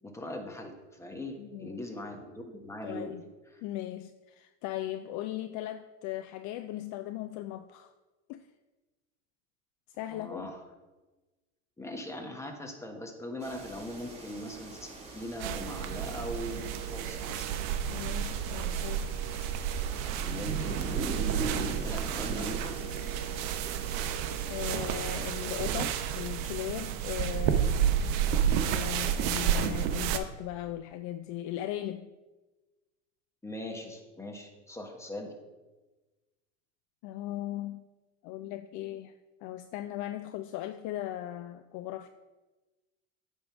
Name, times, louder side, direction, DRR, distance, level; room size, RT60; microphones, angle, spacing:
voice 1, 0.0-3.1 10.1-10.6 11.8-17.5 20.2-23.0 33.4-35.3, left 1 dB, 5° left, 3 dB, 1.3 m, -40 dB
voice 2, 1.4-1.8 2.8-3.2 3.6-7.9 8.3-8.5 9.9-10.5 17.9-19.1 24.5-28.1 28.7-32.1 37.0-37.8 38.2-39.1 39.4-42.1, left 13 dB, 50° left, 10 dB, 0.4 m, -38 dB
sound 1, 13.4-26.1, right 2 dB, 15° right, 2.4 m, -42 dB
sound 2, 15.4-30.2, right 9 dB, 60° right, 0.8 m, -31 dB
8.8 x 3.7 x 5.9 m, 1.2 s
hypercardioid pair, 100°, 39 cm